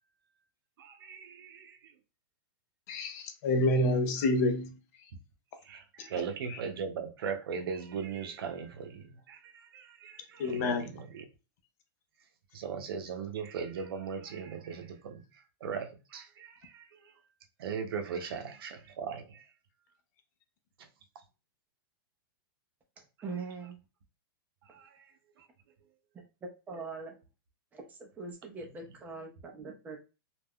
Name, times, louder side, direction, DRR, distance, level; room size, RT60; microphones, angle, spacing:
voice 1, 0.8-1.8 5.7-9.4 9.7-10.9 12.5-15.2 15.6-16.8 17.6-19.4 24.7-24.9, right 6 dB, 80° right, 0.7 m, -38 dB
voice 2, 2.9-5.1 6.0-6.1 6.5-6.6 10.4-10.9, left 2 dB, 45° left, 0.5 m, -29 dB
voice 3, 23.2-23.8 26.4-27.2 27.7-30.0, right 4 dB, 15° right, 0.6 m, -42 dB
2.4 x 2.2 x 3.5 m
supercardioid pair, 160°, 12 cm